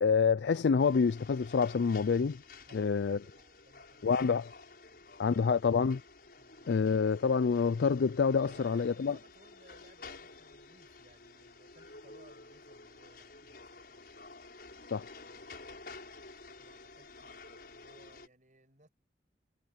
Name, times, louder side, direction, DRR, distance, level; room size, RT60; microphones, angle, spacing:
voice 1, 0.0-2.4 2.7-3.2 4.0-4.5 5.2-6.0 6.7-9.2 14.9-15.1, left 5 dB, 75° left, 0.4 m, -27 dB
sound 1, 0.8-18.3, left 3 dB, 55° left, 6.4 m, -52 dB
voice 2, 2.7-5.2 6.4-6.7 8.4-14.4 15.2-15.9 16.6-18.9, right 2 dB, 45° right, 5.8 m, -63 dB
head